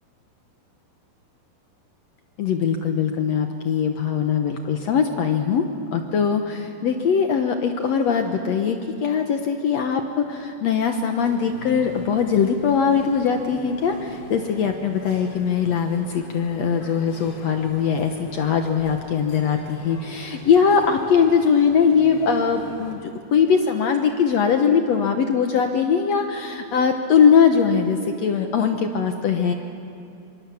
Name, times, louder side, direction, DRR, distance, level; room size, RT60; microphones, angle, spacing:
voice 1, 2.4-5.7 5.9-29.5, left 6 dB, 70° left, 5 dB, 1.7 m, -21 dB
sound 1, 11.2-23.0, left 3 dB, 30° left, 3.1 m, -43 dB
25.5 x 24.5 x 7.1 m, 2.7 s
omnidirectional pair, 4.2 m